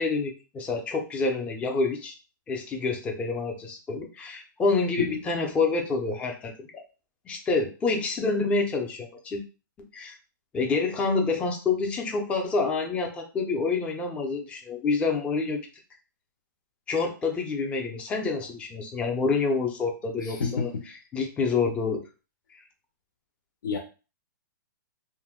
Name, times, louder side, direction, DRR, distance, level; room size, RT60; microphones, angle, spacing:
voice 1, 0.0-2.2 2.5-6.8 7.3-9.4 9.9-10.1 10.5-15.6 16.9-20.7 21.1-22.0 22.5-22.6, left 4 dB, 10° left, 2 dB, 0.4 m, -27 dB
voice 2, 20.2-20.8 23.6-23.8, left 5 dB, 80° left, 2 dB, 0.6 m, -29 dB
2.6 x 2.1 x 3.5 m, 0.33 s
hypercardioid pair, 150°, 11 cm